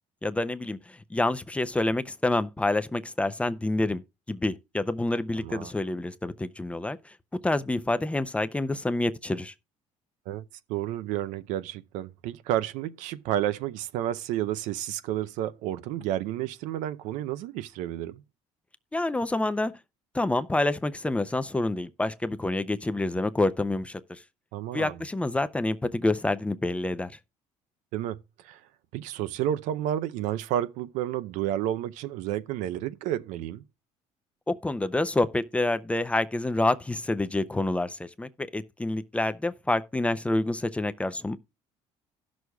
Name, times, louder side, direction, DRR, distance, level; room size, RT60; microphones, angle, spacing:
voice 1, 0.2-4.0 4.3-7.1 7.4-9.5 18.9-19.7 20.1-24.2 24.7-27.1 34.5-41.4, left 2 dB, 10° left, 0.5 m, -27 dB
voice 2, 5.4-5.7 10.3-10.4 10.7-18.2 24.5-25.0 27.9-28.6 28.9-33.6, right 12 dB, 85° right, 0.5 m, -31 dB
16.5 x 6.3 x 2.3 m
cardioid pair, 110°, 13 cm